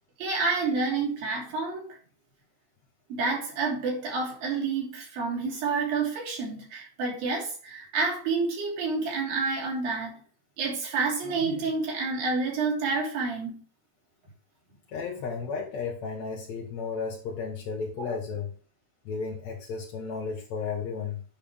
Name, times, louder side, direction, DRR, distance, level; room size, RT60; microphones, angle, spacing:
voice 1, 0.2-1.9 3.1-10.2 10.6-13.6 18.0-18.1, right 4 dB, 55° right, -1 dB, 4.6 m, -29 dB
voice 2, 14.9-18.5 19.0-21.2, left 5 dB, 70° left, -1 dB, 1.7 m, -33 dB
11.0 x 5.9 x 3.6 m, 0.38 s
omnidirectional pair, 5.2 m